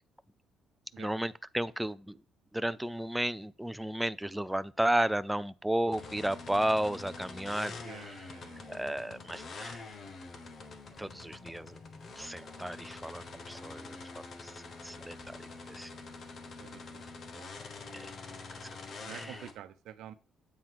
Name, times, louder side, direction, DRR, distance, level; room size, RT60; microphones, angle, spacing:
voice 1, 1.0-2.2 2.5-8.3 8.7-9.8 11.0-11.8 12.2-14.0 14.4-15.4 15.7-15.9 17.9-18.1 19.1-19.5, right 1 dB, 5° right, 0.3 m, -33 dB
sound 1, 5.9-19.5, left 3 dB, 40° left, 1.0 m, -46 dB
voice 2, 7.8-8.7 16.6-16.8 17.3-17.5 19.0-20.1, right 11 dB, 90° right, 0.7 m, -48 dB
8.6 x 3.9 x 4.6 m
cardioid pair, 140°, 0 cm